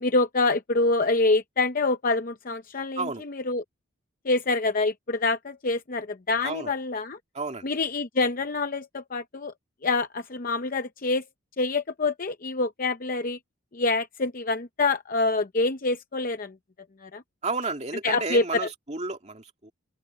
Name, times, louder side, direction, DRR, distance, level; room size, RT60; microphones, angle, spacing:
voice 1, 0.0-3.6 4.3-7.2 7.6-9.5 9.8-11.2 11.6-13.4 13.7-16.5 17.0-17.2 18.0-18.7, left 3 dB, 40° left, 0.7 m, -26 dB
voice 2, 7.3-7.7 17.4-19.7, right 3 dB, 30° right, 2.5 m, -32 dB
open air
head